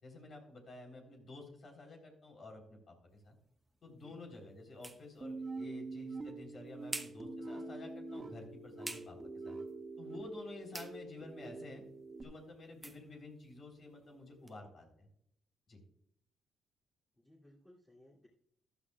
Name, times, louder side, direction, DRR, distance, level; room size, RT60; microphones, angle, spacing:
voice 1, 0.0-3.4 3.8-9.2 9.4-9.6 10.0-11.8 12.2-15.1 15.7-15.8, left 2 dB, 50° left, 2 dB, 3.8 m, -51 dB
sound 1, 3.1-14.6, right 2 dB, 15° right, 1.1 m, -52 dB
voice 2, 3.8-4.2 17.2-18.3, left 1 dB, 15° left, -6 dB, 2.9 m, -61 dB
sound 2, 5.2-12.2, right 3 dB, 30° right, 1.9 m, -45 dB
15.0 x 11.5 x 2.4 m, 0.71 s
cardioid pair, 90°, 0 cm